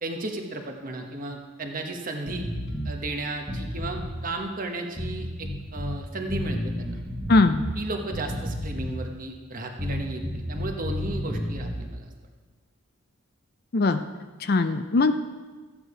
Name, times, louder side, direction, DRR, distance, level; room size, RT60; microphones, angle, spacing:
voice 1, 0.0-2.5 2.8-7.0 7.8-12.1, right 2 dB, 40° right, 3 dB, 1.2 m, -34 dB
sound 1, 2.3-2.9 3.4-4.2 5.0-6.0 6.3-7.8 8.1-9.1 9.8-11.9, left 1 dB, 5° right, 1.5 m, -31 dB
voice 2, 7.3-7.6 13.7-14.0 14.4-15.1, left 3 dB, 45° left, 9 dB, 0.5 m, -20 dB
14.0 x 9.0 x 4.9 m, 1.4 s
head